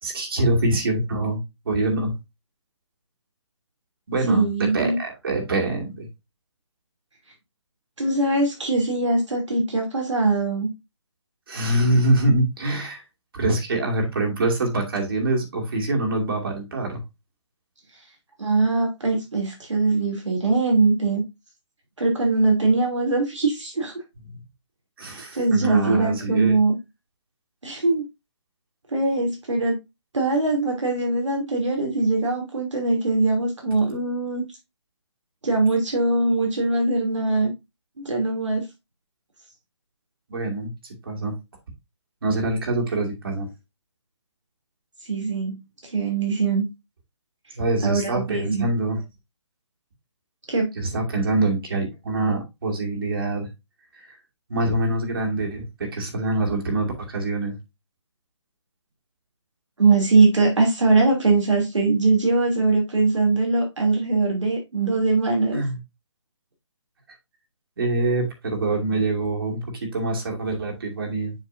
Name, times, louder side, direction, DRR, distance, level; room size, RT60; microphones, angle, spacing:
voice 1, 0.0-2.1 4.1-4.5 4.7-6.1 11.5-13.0 13.3-17.0 24.3-24.4 25.0-26.6 40.3-40.7 41.1-41.3 42.2-43.5 47.5-49.0 50.7-53.5 54.5-57.5 65.5-65.8 67.8-71.3, right 2 dB, 50° right, 2.4 m, -24 dB
voice 2, 4.3-5.0 8.0-10.7 18.4-21.2 22.0-23.9 25.3-26.8 27.6-28.0 28.9-29.8 30.1-34.4 35.4-37.5 38.0-38.7 45.0-45.5 45.9-46.6 47.8-48.7 50.5-50.7 59.8-65.6, right 3 dB, 90° right, 3.0 m, -21 dB
7.1 x 5.9 x 2.7 m
hypercardioid pair, 165°, 15 cm